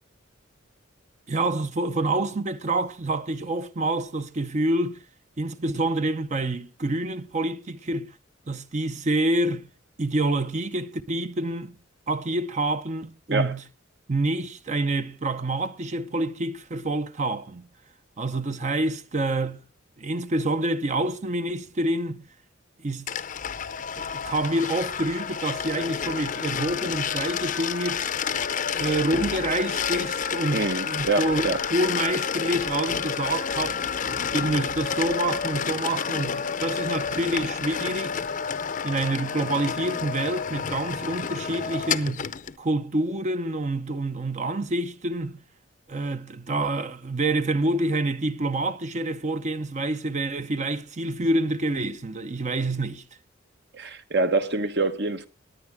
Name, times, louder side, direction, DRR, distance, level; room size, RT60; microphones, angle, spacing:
voice 1, 1.3-5.0 5.4-8.1 8.5-9.7 10.0-11.8 12.1-13.6 14.1-17.7 18.2-19.6 20.0-22.3 22.8-23.1 24.0-28.0 28.7-33.8 34.3-38.2 38.8-42.3 42.6-45.4 45.9-53.0, right 2 dB, 35° right, 0.6 m, -27 dB
sound 1, 23.1-42.5, left 7 dB, 40° left, 0.6 m, -30 dB
voice 2, 30.5-31.6 53.7-55.3, right 3 dB, 60° right, 1.2 m, -25 dB
18.5 x 9.8 x 3.5 m
head